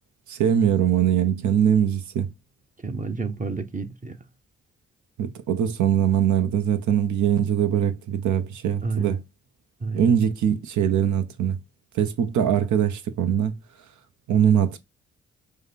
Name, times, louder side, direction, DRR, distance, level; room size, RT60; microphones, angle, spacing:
voice 1, 0.3-2.3 5.2-9.2 9.9-11.6 11.9-13.5 14.3-14.8, right 9 dB, 65° right, 0.7 m, -22 dB
voice 2, 2.8-4.2 8.8-9.2 9.8-10.1 14.3-14.6, right 4 dB, 25° right, 0.8 m, -29 dB
5.0 x 2.0 x 4.1 m
hypercardioid pair, 45°, 31 cm